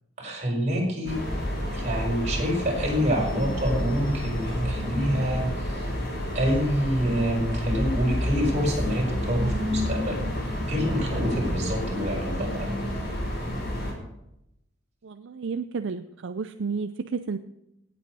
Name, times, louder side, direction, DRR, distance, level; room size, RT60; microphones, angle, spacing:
voice 1, 0.2-1.2 1.7-5.9 6.3-10.2 10.7-12.7, equal, 35° right, -1 dB, 5.1 m, -27 dB
sound 1, 1.1-13.9, equal, 55° left, 5.5 m, -29 dB
voice 2, 15.0-17.4, right 5 dB, 65° right, 10 dB, 0.5 m, -31 dB
17.5 x 8.5 x 4.8 m, 0.85 s
head